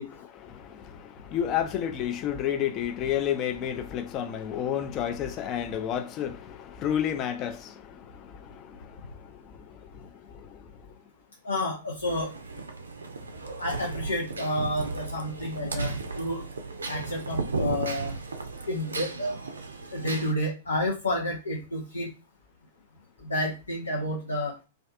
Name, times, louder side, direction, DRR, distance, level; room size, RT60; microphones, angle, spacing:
voice 1, 0.1-10.1 10.3-10.6, left 9 dB, 30° left, 0.4 m, -31 dB
voice 2, 11.4-12.3 13.6-16.5 16.9-18.2 18.7-19.4 19.9-22.1 23.2-24.6, left 1 dB, 80° left, 0.5 m, -30 dB
sound 1, 12.0-20.3, right 3 dB, 75° right, 0.4 m, -35 dB
2.5 x 2.3 x 2.4 m
figure-of-eight pair, 100°, 0 cm